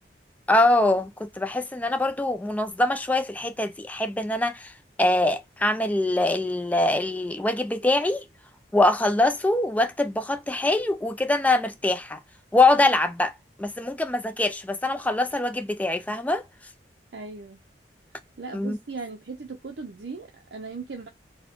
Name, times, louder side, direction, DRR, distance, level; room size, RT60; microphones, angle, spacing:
voice 1, 0.5-4.7 5.0-8.2 8.7-12.2 12.5-13.3 13.6-16.4 18.5-18.8, left 2 dB, 10° left, 0.4 m, -23 dB
voice 2, 17.1-17.6 18.4-21.1, right 4 dB, 65° right, 0.6 m, -38 dB
4.1 x 2.1 x 4.4 m
head